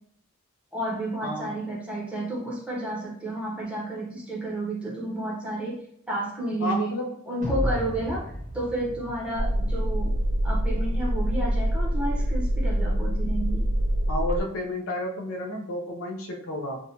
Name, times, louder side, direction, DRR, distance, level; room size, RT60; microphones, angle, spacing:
voice 1, 0.7-5.8 6.1-6.9 7.2-10.1 10.4-13.7, right 1 dB, 5° right, -4 dB, 0.8 m, -31 dB
voice 2, 1.2-1.5 6.6-7.1 7.5-7.7 14.1-16.8, left 1 dB, 65° left, 1 dB, 0.5 m, -31 dB
sound 1, 7.4-10.7, equal, 35° right, 0.7 m, -33 dB
sound 2, 9.4-14.4, equal, 60° right, 0.4 m, -25 dB
2.6 x 2.2 x 2.8 m, 0.67 s
head